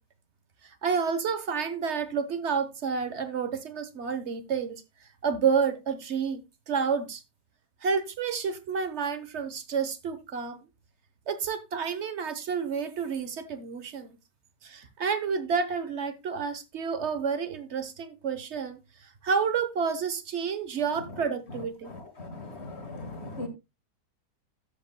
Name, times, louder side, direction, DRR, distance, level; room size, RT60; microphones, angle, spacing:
voice 1, 0.8-4.8 5.2-7.2 7.8-10.6 11.3-14.2 14.6-18.8 19.2-21.9, right 6 dB, 45° right, 1.1 m, -30 dB
voice 2, 21.9-23.5, left 2 dB, 40° left, 1.9 m, -39 dB
13.0 x 8.0 x 2.2 m
omnidirectional pair, 1.9 m